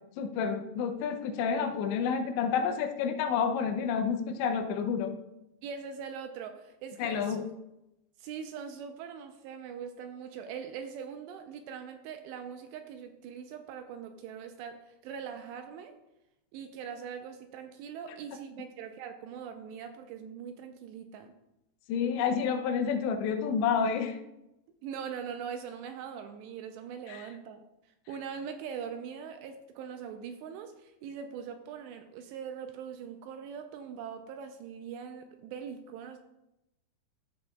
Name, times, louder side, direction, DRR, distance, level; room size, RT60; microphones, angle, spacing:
voice 1, 0.2-5.2 7.0-7.5 21.9-24.2 27.1-27.3, left 6 dB, 80° left, 7 dB, 2.9 m, -29 dB
voice 2, 5.6-7.4 8.2-15.9 16.5-21.3 24.8-27.6 28.1-36.2, right 7 dB, 85° right, 6 dB, 2.6 m, -42 dB
13.5 x 7.9 x 2.3 m, 0.90 s
omnidirectional pair, 5.3 m